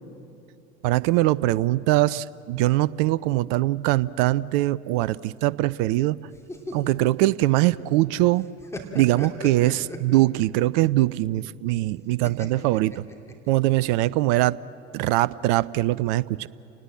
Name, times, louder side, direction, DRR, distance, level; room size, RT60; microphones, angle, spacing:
voice 1, 0.8-6.2 6.7-8.4 8.9-13.0 13.5-14.6 14.9-16.5, right 17 dB, 50° right, 21 dB, 0.5 m, -22 dB
sound 1, 6.3-8.1 8.4-10.6 12.2-13.7, left 2 dB, 10° left, 3.0 m, -37 dB
30.0 x 19.5 x 7.6 m, 2.9 s
figure-of-eight pair, 65°, 34 cm